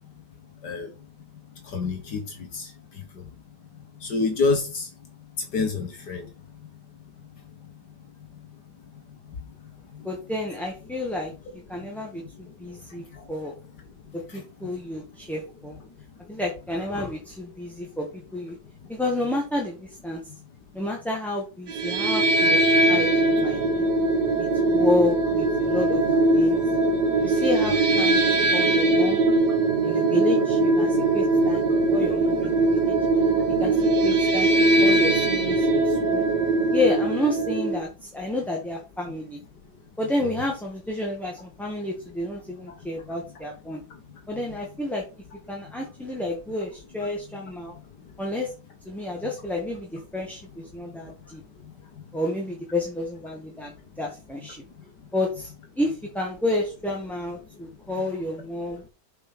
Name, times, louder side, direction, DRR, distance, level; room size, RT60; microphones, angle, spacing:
voice 1, 1.7-2.2 2.5-2.6 4.0-4.9 5.5-6.2, left 3 dB, 70° left, 4 dB, 2.1 m, -26 dB
voice 2, 10.0-11.3 11.7-13.5 14.1-15.8 16.3-18.1 18.3-18.6 18.9-20.2 20.7-22.6 22.9-23.9 24.4-26.0 26.3-26.6 27.2-28.2 28.5-29.2 29.8-31.6 31.9-33.0 33.6-33.7 34.0-34.5 34.8-36.3 36.7-39.4 40.0-43.8 44.3-45.0 45.5-47.8 48.2-48.5 48.9-51.4 52.1-53.7 54.0-54.6 55.1-58.8, left 1 dB, ahead, -1 dB, 1.6 m, -30 dB
sound 1, 21.7-37.8, right 2 dB, 70° right, 1.9 m, -21 dB
7.6 x 5.2 x 6.1 m, 0.32 s
omnidirectional pair, 1.9 m